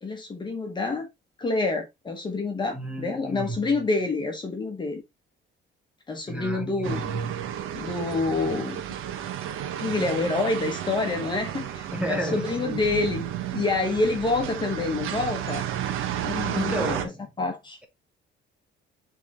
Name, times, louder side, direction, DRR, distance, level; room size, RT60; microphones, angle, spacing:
voice 1, 0.0-1.1 1.4-5.0 6.1-7.1 7.7-8.8 9.8-13.3 13.5-15.7 16.2-17.1 17.4-17.8, left 3 dB, 20° left, 1.2 m, -27 dB
voice 2, 2.7-3.6 6.3-7.6 11.9-12.8 16.5-17.2, right 1 dB, 5° right, 1.4 m, -32 dB
sound 1, 6.8-17.1, right 10 dB, 85° right, 1.1 m, -32 dB
7.2 x 3.7 x 3.5 m
cardioid pair, 170°, 20 cm